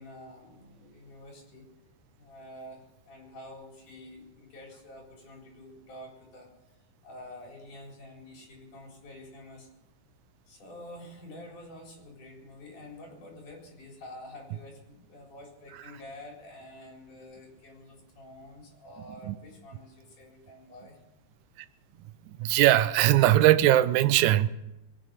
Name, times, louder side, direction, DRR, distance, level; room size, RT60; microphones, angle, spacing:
voice 1, 0.0-1.7 2.2-6.5 7.0-9.7 10.5-21.0, left 1 dB, 75° left, -1 dB, 5.8 m, -48 dB
voice 2, 22.4-24.5, right 14 dB, 80° right, 13 dB, 2.0 m, -20 dB
22.5 x 9.3 x 6.6 m, 0.94 s
omnidirectional pair, 3.6 m